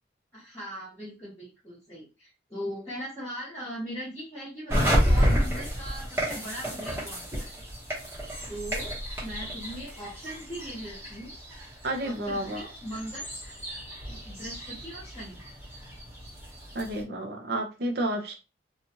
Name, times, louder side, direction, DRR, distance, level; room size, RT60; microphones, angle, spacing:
voice 1, 0.3-7.5 8.5-11.3 12.0-13.3 14.1-15.4, equal, 15° left, -10 dB, 1.1 m, -40 dB
sound 1, 4.7-17.0, equal, 15° right, 0.9 m, -31 dB
voice 2, 11.8-12.7 16.7-18.3, right 1 dB, 55° right, 3 dB, 0.6 m, -30 dB
2.9 x 2.4 x 2.8 m, 0.30 s
head